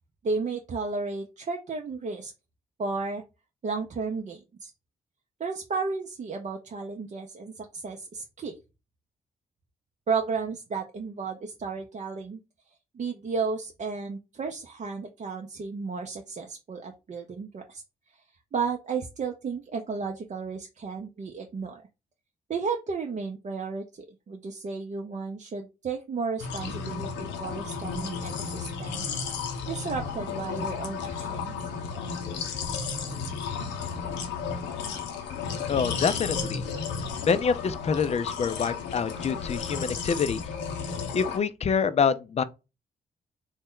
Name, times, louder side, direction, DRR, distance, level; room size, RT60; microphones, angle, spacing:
voice 1, 0.2-2.3 2.8-3.2 3.6-4.7 5.4-8.6 10.1-12.4 12.9-17.8 18.5-21.8 22.5-29.1 29.7-31.5, right 4 dB, 40° right, 0.6 m, -33 dB
sound 1, 26.4-41.4, left 6 dB, 75° left, 0.6 m, -33 dB
voice 2, 35.7-36.7 37.2-40.4 41.1-42.4, left 6 dB, 35° left, 0.4 m, -26 dB
3.0 x 2.1 x 3.7 m
hypercardioid pair, 40°, 19 cm